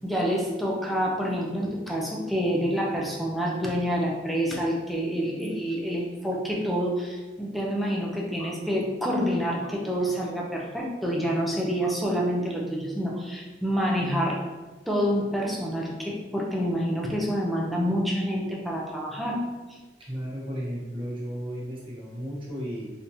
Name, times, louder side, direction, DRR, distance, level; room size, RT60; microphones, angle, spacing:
voice 1, 0.0-14.4 14.9-19.4 19.7-19.8, equal, ahead, -3 dB, 0.5 m, -27 dB
voice 2, 20.0-22.9, equal, 30° right, -6 dB, 0.9 m, -34 dB
3.5 x 2.8 x 2.7 m, 1.2 s
head